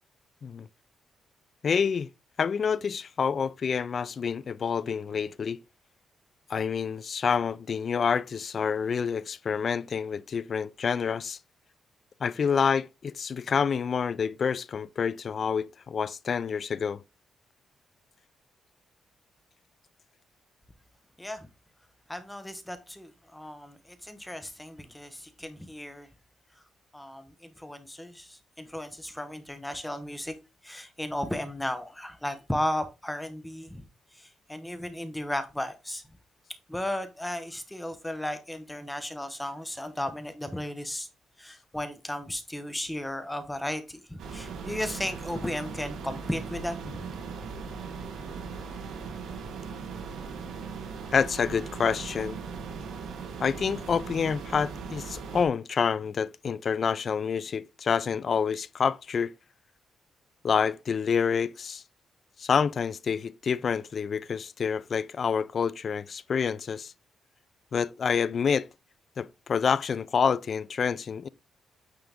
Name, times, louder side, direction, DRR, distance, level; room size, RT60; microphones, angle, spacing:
voice 1, 1.6-2.1 2.4-5.6 6.5-11.4 12.2-17.0 51.1-52.4 53.4-59.3 60.4-61.8 62.4-66.9 67.7-68.7 69.2-71.3, left 6 dB, 35° left, 0.3 m, -28 dB
voice 2, 22.1-26.1 26.9-30.3 30.6-33.8 34.2-36.0 36.7-41.1 41.4-47.0, left 1 dB, 5° left, 0.8 m, -35 dB
sound 1, 44.2-55.4, right 5 dB, 75° right, 1.3 m, -39 dB
9.0 x 3.8 x 3.5 m
cardioid pair, 175°, 0 cm